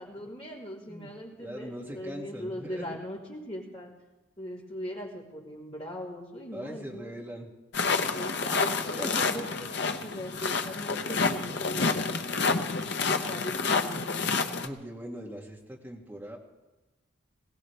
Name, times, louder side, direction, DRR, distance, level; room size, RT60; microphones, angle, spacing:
voice 1, 0.0-3.9 4.4-7.1 8.1-14.3, equal, 30° left, -5 dB, 3.7 m, -40 dB
voice 2, 1.4-3.0 6.5-7.5 8.9-9.6 14.6-16.4, equal, 10° right, -3 dB, 2.2 m, -40 dB
sound 1, 7.7-14.7, left 4 dB, 55° left, 0.8 m, -29 dB
21.5 x 18.0 x 3.4 m, 1.1 s
head